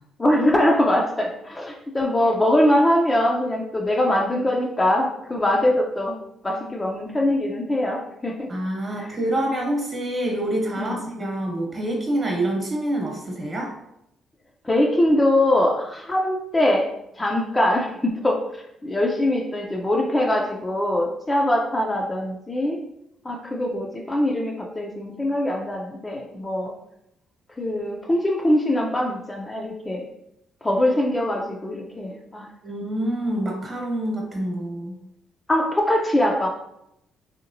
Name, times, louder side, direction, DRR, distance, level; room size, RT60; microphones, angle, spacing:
voice 1, 0.2-6.2 6.4-8.5 8.9-9.1 10.8-11.0 14.6-16.9 17.2-22.8 23.2-26.7 27.6-30.1 30.6-32.5 35.5-36.5, left 1 dB, 20° left, 0 dB, 0.4 m, -22 dB
voice 2, 8.5-13.7 32.6-35.0, right 1 dB, 35° right, 0 dB, 1.0 m, -26 dB
3.2 x 2.9 x 2.6 m, 0.80 s
cardioid pair, 90°, 0 cm